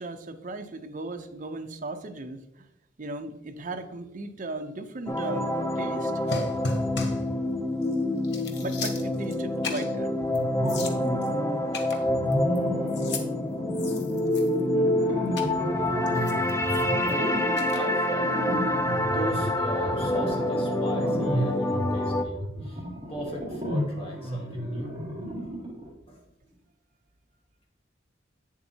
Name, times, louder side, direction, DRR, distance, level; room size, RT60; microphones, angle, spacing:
voice 1, 0.0-2.7 3.0-6.1 8.6-10.2, right 2 dB, 45° right, 6 dB, 0.6 m, -37 dB
sound 1, 5.1-22.2, left 1 dB, 15° left, 0.5 m, -27 dB
sound 2, 6.3-7.3 7.8-7.9 8.2-9.4 9.6-9.9 10.3-10.4 10.7-11.3 11.7-12.6 12.9-13.3 13.7-14.7 15.4-15.5 16.1-17.1 17.6-17.8, left 3 dB, 65° left, 1.0 m, -35 dB
sound 3, 10.3-11.6 12.0-25.9, equal, 25° right, 1.9 m, -32 dB
voice 2, 17.1-17.4 17.7-18.5 19.0-25.0 26.1-26.2, equal, 30° left, -2 dB, 1.7 m, -37 dB
8.7 x 7.3 x 2.8 m, 0.87 s
head